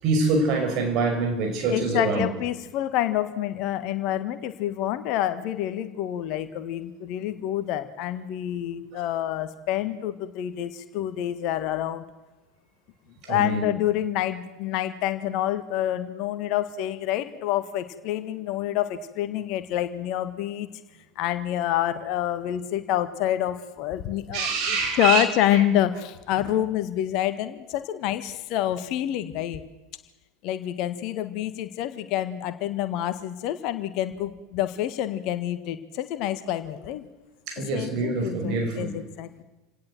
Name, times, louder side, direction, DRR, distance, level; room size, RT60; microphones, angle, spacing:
voice 1, 0.0-2.2 8.9-9.0 13.2-13.6 24.3-25.2 25.5-25.6 37.5-39.0, right 3 dB, 45° right, 6.0 m, -25 dB
voice 2, 1.7-12.0 13.3-20.7 21.1-29.6 30.4-37.1 37.7-39.4, left 12 dB, 50° left, 1.6 m, -27 dB
28.0 x 18.5 x 7.8 m
figure-of-eight pair, 80°, 0 cm